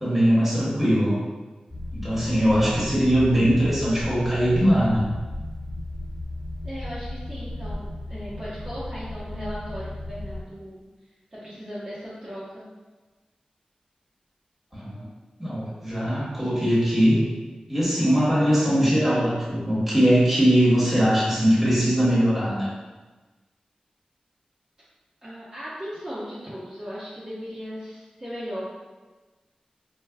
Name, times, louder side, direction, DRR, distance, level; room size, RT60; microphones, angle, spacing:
voice 1, 0.0-1.1 1.9-5.1 14.7-15.0 15.4-17.3 17.7-22.7, equal, 10° right, -8 dB, 1.2 m, -21 dB
sound 1, 1.7-10.4, left 1 dB, 5° left, 1.5 m, -35 dB
voice 2, 6.6-10.8 11.3-12.6 25.2-28.6, equal, 35° right, -11 dB, 0.8 m, -37 dB
4.8 x 2.2 x 2.2 m, 1.2 s
wide cardioid pair, 95°, 2 cm